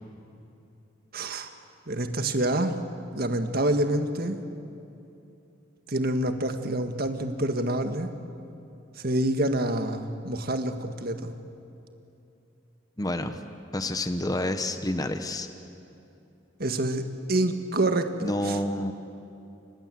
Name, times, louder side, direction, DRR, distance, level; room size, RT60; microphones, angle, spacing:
voice 1, 1.1-1.5 1.9-2.8 3.1-4.4 5.9-8.1 9.0-11.3 16.6-18.6, right 1 dB, 50° right, 7 dB, 1.8 m, -27 dB
voice 2, 13.0-13.4 13.7-15.5 18.2-18.9, left 1 dB, 20° left, 8 dB, 1.1 m, -28 dB
29.5 x 25.5 x 7.8 m, 2.8 s
head